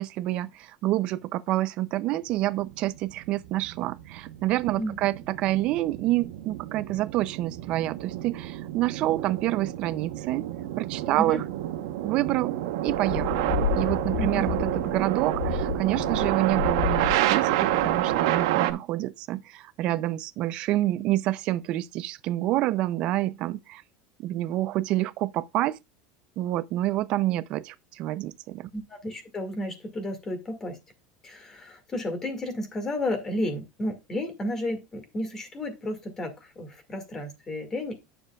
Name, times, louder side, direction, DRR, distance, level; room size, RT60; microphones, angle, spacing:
voice 1, 0.0-10.5 10.8-11.4 12.0-12.6 12.8-13.5 13.8-23.8 24.2-25.8 26.4-28.7, right 15 dB, 50° right, 0.4 m, -28 dB
sound 1, 2.6-18.7, right 13 dB, 85° right, 0.8 m, -29 dB
sound 2, 12.9-18.4, left 9 dB, 65° left, 0.8 m, -32 dB
voice 2, 14.2-14.5 28.7-30.8 31.2-37.9, left 1 dB, 20° left, 1.9 m, -32 dB
9.8 x 6.6 x 2.3 m
supercardioid pair, 150°, 2 cm